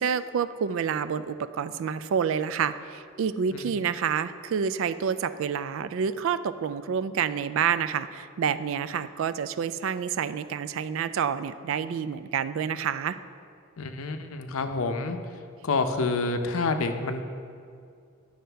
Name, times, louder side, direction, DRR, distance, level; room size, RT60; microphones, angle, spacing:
voice 1, 0.0-13.2, right 7 dB, 65° right, 14 dB, 0.3 m, -28 dB
voice 2, 13.8-15.2 15.6-17.2, left 3 dB, 75° left, 7 dB, 0.6 m, -28 dB
10.5 x 6.4 x 3.4 m, 2.3 s
head